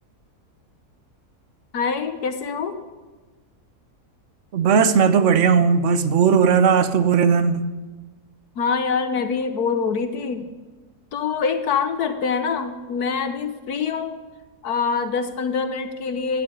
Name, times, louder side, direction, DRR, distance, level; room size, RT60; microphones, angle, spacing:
voice 1, 1.7-2.8 8.6-10.5 11.1-14.2 14.6-16.4, left 5 dB, 75° left, 9 dB, 1.5 m, -25 dB
voice 2, 4.5-7.7, right 6 dB, 55° right, 12 dB, 1.1 m, -17 dB
13.0 x 9.7 x 9.7 m, 1.3 s
omnidirectional pair, 1.7 m